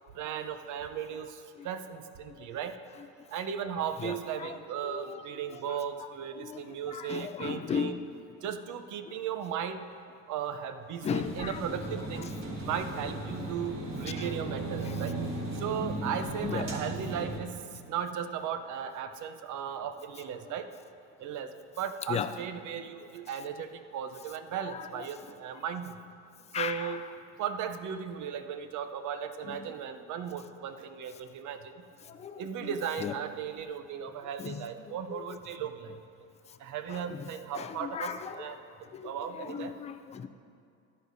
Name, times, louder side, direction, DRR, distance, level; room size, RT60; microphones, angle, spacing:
voice 1, 0.2-1.3 1.6-2.7 3.3-8.0 8.4-9.9 10.3-15.1 15.6-17.6 17.9-20.7 21.2-21.5 21.8-26.0 26.6-27.0 27.4-31.7 32.4-36.0 36.6-38.6 39.0-39.7, right 8 dB, 55° right, 9 dB, 0.7 m, -36 dB
voice 2, 4.0-4.6 4.8-5.2 5.5-5.8 6.4-6.6 6.9-8.0 11.0-12.3 12.7-12.8 13.4-13.5 14.2-14.3 14.8-15.0 15.8-16.9 20.4-20.5 22.1-22.3 24.5-25.1 26.5-27.1 29.4-29.6 32.1-33.2 34.4-35.4 36.9-38.6 38.9-40.3, left 7 dB, 20° left, 9 dB, 0.4 m, -37 dB
sound 1, 11.2-17.4, right 1 dB, 35° right, 1.8 m, -38 dB
sound 2, 13.6-17.9, right 5 dB, 75° right, 1.1 m, -41 dB
14.0 x 10.0 x 2.7 m, 2.4 s
supercardioid pair, 105°, 37 cm